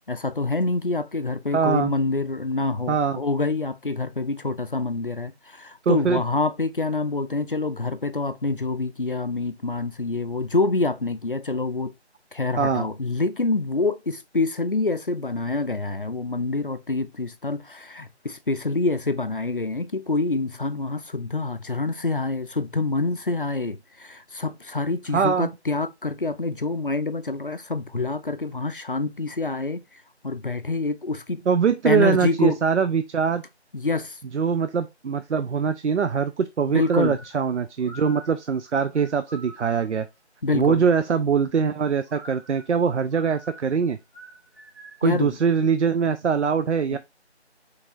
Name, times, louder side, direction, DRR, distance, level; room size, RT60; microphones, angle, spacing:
voice 1, 0.1-11.9 12.3-29.8 30.2-31.5 31.8-32.6 33.7-34.2 36.7-37.2 40.4-40.8 45.0-45.4 46.9-47.0, left 3 dB, 50° left, 0.4 m, -26 dB
voice 2, 1.5-1.9 2.9-3.2 5.9-6.2 12.6-12.9 25.1-25.5 31.5-33.4 34.3-40.1 40.5-44.0 45.0-47.0, right 6 dB, 90° right, 0.5 m, -22 dB
sound 1, 36.7-40.0 42.0-45.1, equal, 20° right, 2.2 m, -46 dB
5.6 x 3.4 x 2.5 m
figure-of-eight pair, 170°, 34 cm